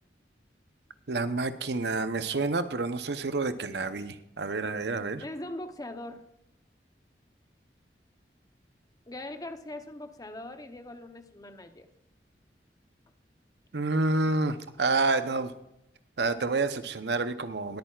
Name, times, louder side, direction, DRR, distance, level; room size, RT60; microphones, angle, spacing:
voice 1, 1.1-5.2 13.7-15.5 16.2-17.8, right 3 dB, 70° right, 10 dB, 0.8 m, -28 dB
voice 2, 5.2-6.3 9.1-11.9 14.2-14.3, left 1 dB, 20° left, 7 dB, 0.8 m, -41 dB
21.5 x 9.0 x 2.4 m, 0.82 s
head